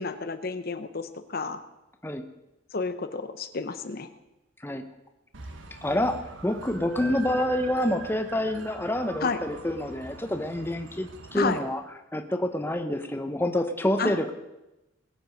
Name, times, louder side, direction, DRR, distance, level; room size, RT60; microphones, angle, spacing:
voice 1, 0.0-1.6 2.7-4.1 9.2-9.4 11.3-11.6 14.0-14.3, left 4 dB, 50° left, 10 dB, 0.8 m, -31 dB
sound 1, 5.3-11.6, right 3 dB, 75° right, 1.4 m, -43 dB
voice 2, 5.8-11.8 12.1-14.3, left 1 dB, 10° left, 6 dB, 0.8 m, -27 dB
20.5 x 7.9 x 6.4 m, 0.96 s
head